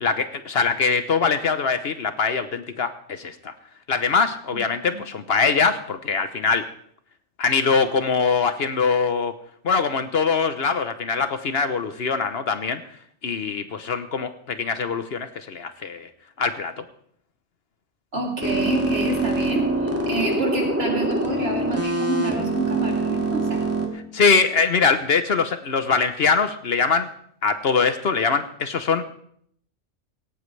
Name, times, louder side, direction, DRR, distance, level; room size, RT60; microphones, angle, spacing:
voice 1, 0.0-3.5 3.9-6.6 7.4-9.3 9.6-12.8 13.2-16.1 16.4-16.7 24.1-27.1 27.4-29.1, left 5 dB, 60° left, 10 dB, 1.0 m, -22 dB
voice 2, 18.1-23.6, right 2 dB, 55° right, -1 dB, 3.4 m, -28 dB
sound 1, 18.4-23.9, right 2 dB, 10° right, 2.2 m, -24 dB
17.5 x 17.5 x 3.3 m, 0.66 s
omnidirectional pair, 1.2 m